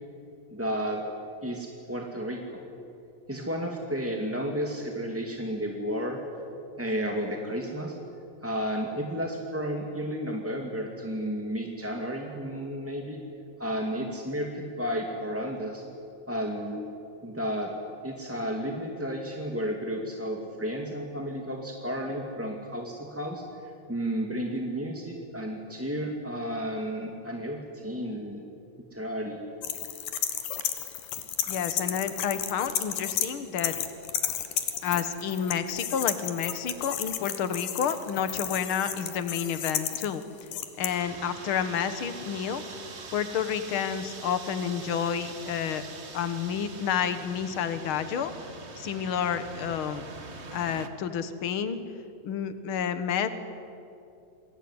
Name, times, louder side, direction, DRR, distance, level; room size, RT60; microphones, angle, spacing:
voice 1, 0.5-1.0 1.4-2.6 3.3-6.2 6.8-7.9 8.4-13.2 13.6-15.8 16.3-16.8 17.2-17.7 18.0-28.4 28.9-29.4, equal, 5° right, 1 dB, 1.5 m, -32 dB
sound 1, 29.6-33.3 33.6-40.9, left 10 dB, 80° left, 3.3 m, -32 dB
voice 2, 31.5-33.7 34.8-40.2 40.8-42.6 43.1-45.8 46.1-48.3 48.8-50.0 50.5-51.8 52.2-53.3, left 8 dB, 55° left, 11 dB, 1.6 m, -30 dB
sound 2, 40.9-50.9, right 4 dB, 80° right, 0.6 m, -43 dB
28.0 x 21.5 x 9.8 m, 2.6 s
omnidirectional pair, 4.0 m